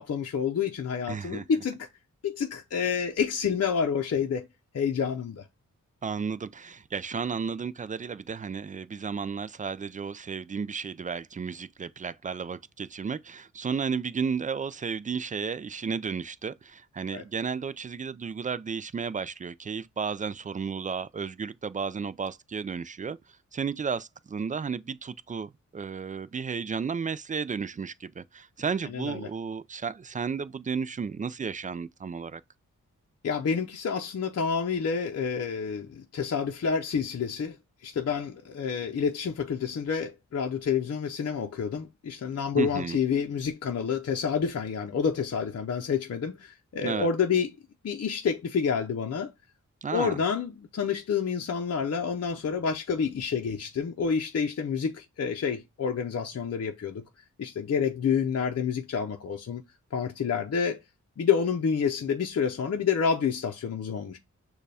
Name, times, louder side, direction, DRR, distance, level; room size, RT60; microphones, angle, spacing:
voice 1, 0.0-1.9 2.2-4.5 4.7-5.5 17.1-17.2 28.9-29.3 33.2-37.6 37.8-47.5 47.8-49.3 49.9-57.0 57.4-59.6 59.9-60.8 61.2-64.2, left 6 dB, 55° left, 0.7 m, -28 dB
voice 2, 1.1-1.4 6.0-23.2 23.5-32.4 42.5-43.0 46.8-47.1 49.8-50.2, right 6 dB, 25° right, 0.3 m, -33 dB
6.5 x 2.4 x 3.4 m
cardioid pair, 60°, 31 cm